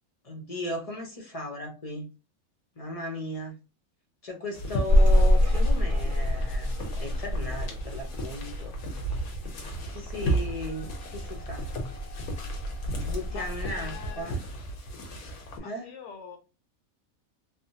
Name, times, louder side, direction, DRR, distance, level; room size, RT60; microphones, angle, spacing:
voice 1, 0.2-2.1 2.8-3.6 4.2-8.7 9.9-10.9 11.1-11.7 13.0-14.4 15.6-15.9, left 1 dB, 40° left, 1 dB, 0.6 m, -36 dB
sound 1, 4.5-15.6, right 1 dB, 85° left, 1.2 m, -35 dB
sound 2, 4.9-14.2, equal, 65° right, 1.3 m, -27 dB
voice 2, 13.3-14.3 15.6-16.4, left 6 dB, 65° left, 5 dB, 0.9 m, -44 dB
3.2 x 2.1 x 2.7 m, 0.31 s
omnidirectional pair, 1.5 m